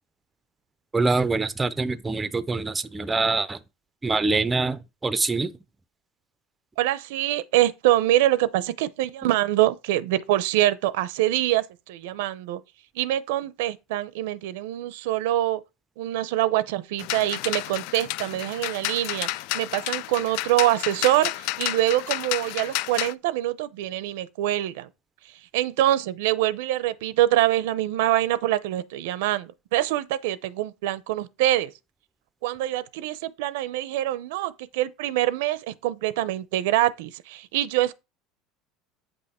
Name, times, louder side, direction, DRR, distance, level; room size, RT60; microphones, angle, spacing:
voice 1, 0.9-3.6 4.0-5.5, right 3 dB, 10° right, 0.4 m, -24 dB
voice 2, 6.8-12.6 13.0-15.6 16.0-19.3 19.5-24.9 25.5-31.7 32.4-37.9, right 14 dB, 90° right, 0.7 m, -25 dB
sound 1, 17.0-23.1, left 17 dB, 60° left, 0.3 m, -31 dB
8.5 x 5.5 x 4.3 m
cardioid pair, 175°, 0 cm